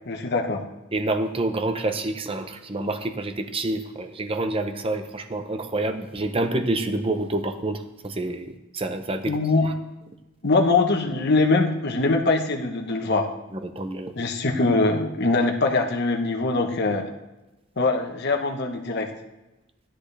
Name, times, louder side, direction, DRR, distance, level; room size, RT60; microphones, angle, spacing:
voice 1, 0.1-0.6 9.3-9.7 10.4-13.3 14.2-17.1 17.8-19.1, left 3 dB, 50° left, 2 dB, 1.1 m, -22 dB
voice 2, 0.9-9.7 13.5-14.1, right 2 dB, 25° right, 7 dB, 0.8 m, -28 dB
15.5 x 10.0 x 3.4 m, 1.0 s
head